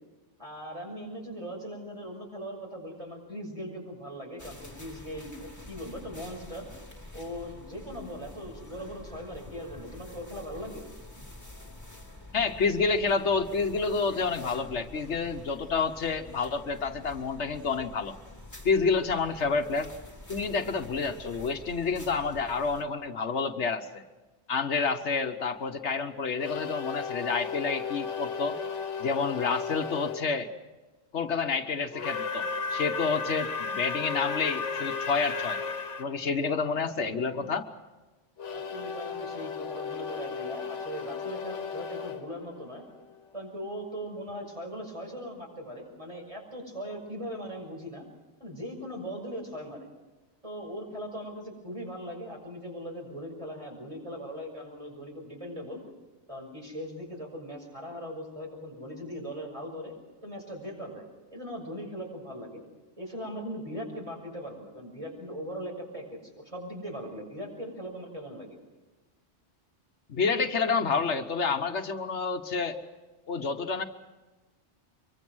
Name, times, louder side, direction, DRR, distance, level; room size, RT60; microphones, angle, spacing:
voice 1, 0.4-6.7 7.1-10.9 38.5-42.8 43.3-48.1 48.4-49.9 50.4-55.8 56.3-59.9 60.2-61.1 61.3-62.6 63.0-68.6, equal, 25° right, 0 dB, 6.5 m, -39 dB
sound 1, 4.4-22.8, left 1 dB, 15° left, 2.5 m, -47 dB
voice 2, 12.3-18.1 18.6-19.9 20.3-24.0 24.5-28.6 29.0-30.5 31.1-35.6 36.0-37.7 70.1-72.8 73.3-73.8, left 4 dB, 75° left, 8 dB, 1.4 m, -29 dB
sound 2, 26.4-30.2 31.9-36.1 38.4-43.2, left 5 dB, 90° left, 1.6 m, -35 dB
24.5 x 24.0 x 6.3 m, 1.2 s
omnidirectional pair, 1.2 m